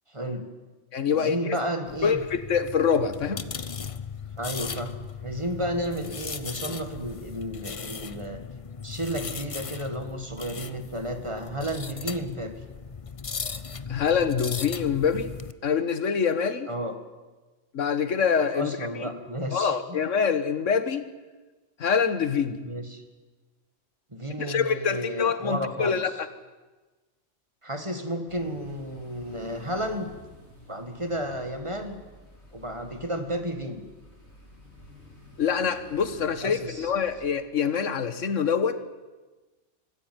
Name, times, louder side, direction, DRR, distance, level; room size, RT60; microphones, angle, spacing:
voice 1, 0.1-0.4 1.1-2.2 4.4-4.9 5.2-8.4 8.8-12.5 16.7-17.0 18.5-20.0 22.6-23.0 24.1-26.0 27.6-30.1 30.7-32.0 32.5-33.8 36.4-36.9, equal, 25° right, 7 dB, 1.9 m, -32 dB
voice 2, 0.9-1.6 2.0-3.5 13.9-15.3 15.6-16.7 17.7-18.7 19.0-19.1 19.5-21.1 21.8-22.6 24.4-26.3 35.4-38.8, left 6 dB, 90° left, 13 dB, 1.6 m, -25 dB
sound 1, 1.9-15.5, left 5 dB, 35° left, 0.7 m, -37 dB
sound 2, 28.3-37.3, equal, 60° left, 5.3 m, -51 dB
24.5 x 15.0 x 9.5 m, 1.2 s
omnidirectional pair, 1.2 m